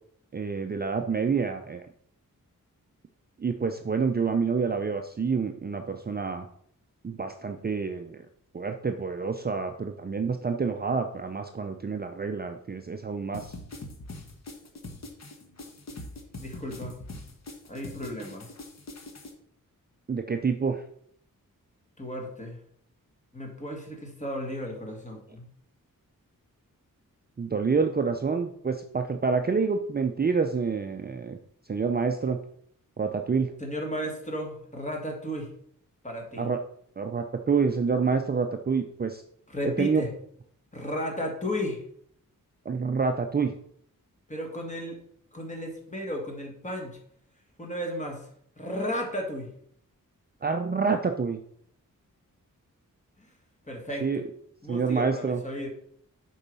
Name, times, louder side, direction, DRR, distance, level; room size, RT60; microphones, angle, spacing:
voice 1, 0.3-1.8 3.4-6.5 7.0-8.2 8.5-13.5 20.1-20.8 27.4-31.4 31.7-32.4 33.0-33.5 36.4-36.6 37.0-39.2 39.6-40.0 42.7-43.5 50.4-51.4 54.0-54.2 54.7-55.4, right 5 dB, 30° right, 5 dB, 0.5 m, -27 dB
sound 1, 13.3-19.3, left 2 dB, 50° left, 1.2 m, -42 dB
voice 2, 16.4-17.0 17.7-18.5 22.0-22.6 23.3-25.5 33.6-35.5 36.0-36.5 39.5-40.1 40.7-41.8 44.3-45.0 45.3-47.0 47.6-48.3 48.6-49.5 53.2-53.3 53.7-54.1 54.6-55.7, equal, 20° left, 1 dB, 1.9 m, -34 dB
7.1 x 4.6 x 5.4 m, 0.65 s
wide cardioid pair, 120°, 34 cm